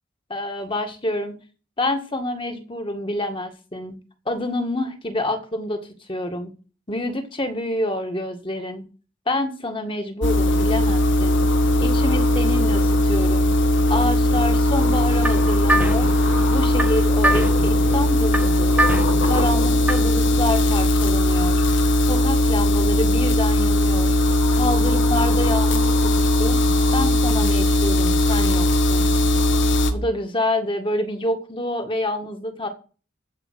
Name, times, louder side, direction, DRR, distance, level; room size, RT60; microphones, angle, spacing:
voice 1, 0.3-1.3 1.8-4.0 4.3-5.8 6.1-6.5 6.9-8.8 9.3-11.4 11.8-13.5 13.9-16.1 16.5-18.8 19.2-21.6 22.0-24.2 24.5-26.6 26.9-29.1 29.9-32.7, left 1 dB, 25° left, 5 dB, 1.9 m, -27 dB
sound 1, 10.2-29.9, left 1 dB, 60° left, 1.7 m, -19 dB
sound 2, 14.8-20.2, right 1 dB, 5° right, 0.9 m, -26 dB
15.5 x 5.2 x 9.0 m, 0.38 s
head